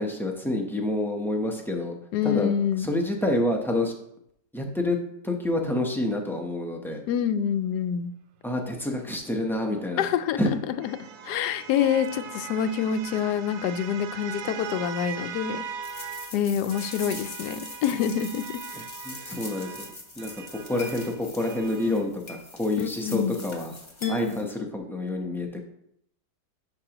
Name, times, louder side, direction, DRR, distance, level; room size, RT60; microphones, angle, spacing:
voice 1, 0.0-2.0 2.2-2.5 2.8-3.9 4.5-5.0 5.2-7.0 8.4-10.0 10.4-10.5 19.0-19.8 20.2-23.7 24.1-25.6, left 1 dB, 5° left, 1 dB, 0.3 m, -28 dB
voice 2, 2.1-2.9 7.1-8.1 10.0-10.4 10.7-11.0 11.2-15.6 16.3-18.4 22.8-23.4 24.0-24.4, left 8 dB, 75° left, 11 dB, 1.1 m, -26 dB
sound 1, 9.7-16.4 16.7-22.1, right 7 dB, 70° right, 0.6 m, -40 dB
sound 2, 15.8-24.5, left 2 dB, 20° left, 1.0 m, -42 dB
11.5 x 5.3 x 3.0 m, 0.72 s
omnidirectional pair, 1.8 m